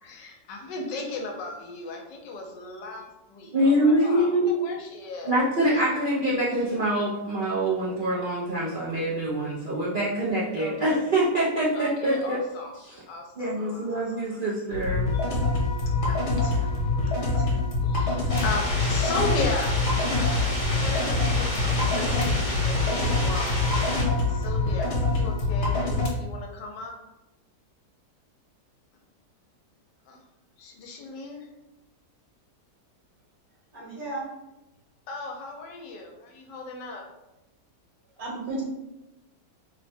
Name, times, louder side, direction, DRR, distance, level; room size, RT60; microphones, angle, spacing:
voice 1, 0.0-6.0 6.5-6.6 10.5-11.1 11.7-12.8 13.1-14.2 15.9-16.7 17.0-17.6 17.8-19.7 20.4-23.6 24.3-26.9 30.1-30.2 30.6-31.5 35.1-37.1, left 3 dB, 90° left, 2 dB, 1.3 m, -36 dB
voice 2, 3.5-4.6 5.2-12.4 12.7-12.9 13.4-15.2, right 1 dB, 75° right, -7 dB, 0.4 m, -25 dB
sound 1, 14.7-26.1, left 3 dB, 70° left, 1.4 m, -25 dB
sound 2, 18.3-24.0, left 1 dB, 30° left, 0.6 m, -31 dB
voice 3, 33.7-34.3 38.2-38.6, right 2 dB, 60° right, -5 dB, 1.6 m, -33 dB
3.4 x 2.1 x 4.2 m, 0.97 s
omnidirectional pair, 1.9 m